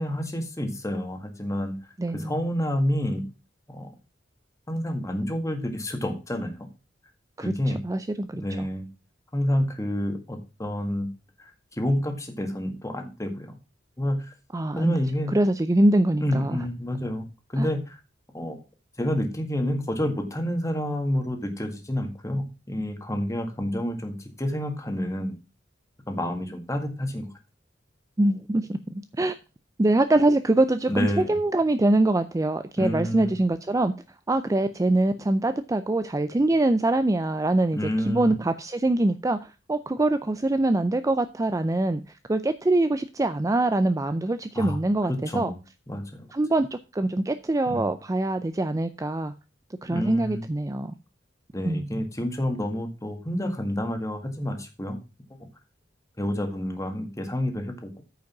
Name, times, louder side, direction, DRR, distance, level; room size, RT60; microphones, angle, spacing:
voice 1, 0.0-1.8 2.1-3.2 3.7-3.9 4.7-6.7 7.4-7.8 8.3-8.9 9.3-11.1 11.4-11.5 11.8-13.6 14.0-14.3 14.8-15.3 16.2-17.3 17.5-18.0 18.3-18.6 19.0-25.3 26.1-27.3 30.9-31.4 32.8-33.3 37.7-38.3 44.6-44.8 45.3-45.6 45.9-46.3 47.7-47.8 49.9-50.4 51.5-55.0 56.2-58.0, left 1 dB, 15° left, 1.8 m, -29 dB
voice 2, 2.0-2.3 7.4-7.5 7.8-8.7 14.5-15.0 15.3-16.6 17.6-17.7 28.2-29.4 29.8-33.9 34.3-42.0 42.3-45.5 46.3-49.3 49.8-50.9 51.6-52.0, right 2 dB, 15° right, 0.4 m, -24 dB
9.2 x 5.2 x 6.0 m
head